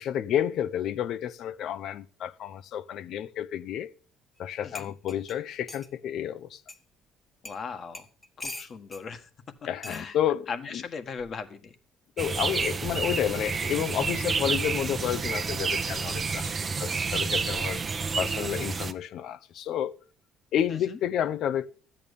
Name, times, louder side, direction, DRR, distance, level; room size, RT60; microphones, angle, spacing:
voice 1, 0.0-3.9 4.4-6.6 9.7-10.8 12.2-16.5 16.8-17.8 18.2-20.0 20.5-21.7, left 10 dB, 60° left, 0.8 m, -30 dB
sound 1, 4.4-4.5 4.7-5.9 6.7-6.8 7.4-7.6 7.9-9.0 9.8-10.1 11.2-11.4, left 2 dB, 20° left, 1.4 m, -42 dB
voice 2, 7.4-8.1 8.4-9.3 9.9-10.2 10.5-11.7 20.7-21.0, left 5 dB, 40° left, 1.6 m, -38 dB
sound 2, 12.2-18.9, right 5 dB, 30° right, 1.0 m, -29 dB
13.0 x 8.9 x 5.3 m
cardioid pair, 125°, 0 cm